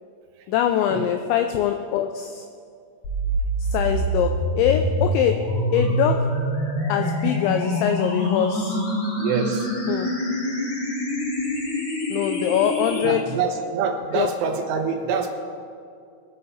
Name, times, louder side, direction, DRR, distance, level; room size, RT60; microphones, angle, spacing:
voice 1, 0.5-2.5 3.7-6.4 6.9-8.8 9.9-10.2 12.1-13.2 14.2-14.3, left 9 dB, 90° left, 7 dB, 2.6 m, -23 dB
sound 1, 3.0-13.1, equal, 50° left, 3.0 m, -25 dB
voice 2, 9.2-9.7 13.0-15.3, right 6 dB, 80° right, 4 dB, 3.4 m, -25 dB
22.0 x 7.7 x 4.1 m, 2.3 s
omnidirectional pair, 5.8 m